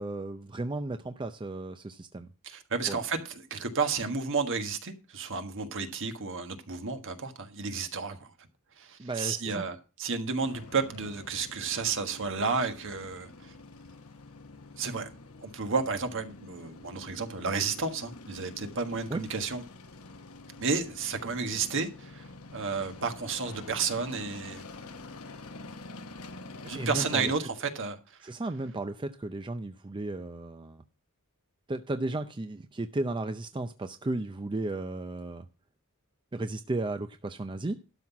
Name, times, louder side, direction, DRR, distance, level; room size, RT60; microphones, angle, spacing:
voice 1, 0.0-2.3 2.9-3.0 9.0-9.6 19.1-19.2 26.7-27.3 28.2-30.8 31.7-35.5 36.3-37.8, right 2 dB, 20° right, 0.5 m, -34 dB
voice 2, 2.4-8.3 8.8-13.5 14.8-15.1 15.4-19.6 20.6-24.6 26.7-28.3, right 4 dB, 60° right, 1.4 m, -32 dB
sound 1, 10.4-27.4, left 2 dB, 70° left, 1.0 m, -47 dB
12.0 x 5.7 x 5.9 m
head